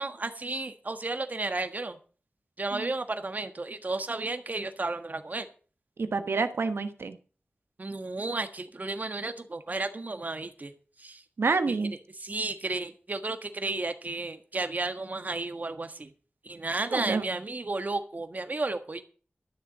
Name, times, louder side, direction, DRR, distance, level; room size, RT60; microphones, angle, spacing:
voice 1, 0.0-2.0 2.6-5.5 7.8-10.7 11.0-11.2 11.7-11.8 12.2-16.1 16.4-19.0, right 2 dB, 45° right, 8 dB, 1.5 m, -33 dB
voice 2, 6.0-7.2 11.4-11.9 16.9-17.2, right 4 dB, 85° right, 9 dB, 1.2 m, -28 dB
12.5 x 7.1 x 7.4 m, 0.40 s
wide cardioid pair, 75°, 4 cm